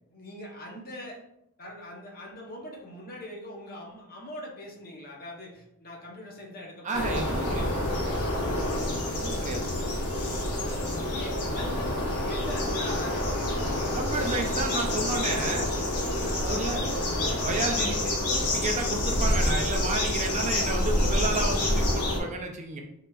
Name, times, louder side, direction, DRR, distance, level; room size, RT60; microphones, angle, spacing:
voice 1, 0.1-1.2 1.6-7.5 11.0-14.1 14.4-14.6 16.1-16.5, left 1 dB, 45° left, 0 dB, 0.8 m, -42 dB
voice 2, 6.8-8.3 9.1-9.7 13.9-15.7 16.4-16.8 17.4-22.8, right 3 dB, 35° right, 3 dB, 0.4 m, -32 dB
sound 1, 6.9-22.2, left 1 dB, 80° left, 0.8 m, -27 dB
3.9 x 3.2 x 2.3 m, 0.78 s
head